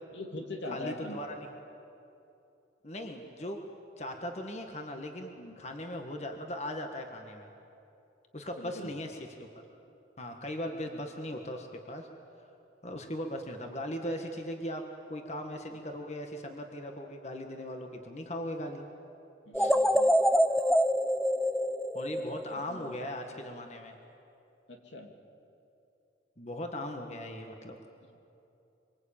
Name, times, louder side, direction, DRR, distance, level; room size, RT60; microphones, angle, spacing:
voice 1, 0.1-1.2 5.4-5.6 8.6-8.9 19.5-20.1 22.4-22.9 23.2-23.3 24.7-25.1, left 1 dB, 80° left, 3 dB, 2.7 m, -42 dB
voice 2, 0.7-1.5 2.8-3.6 4.0-7.5 8.3-9.5 10.2-12.1 12.8-18.9 19.5-19.8 21.9-24.0 26.4-27.8, left 1 dB, 35° left, 3 dB, 1.7 m, -39 dB
sound 1, 19.5-22.7, equal, ahead, 0.6 m, -26 dB
26.0 x 24.5 x 8.8 m, 2.8 s
head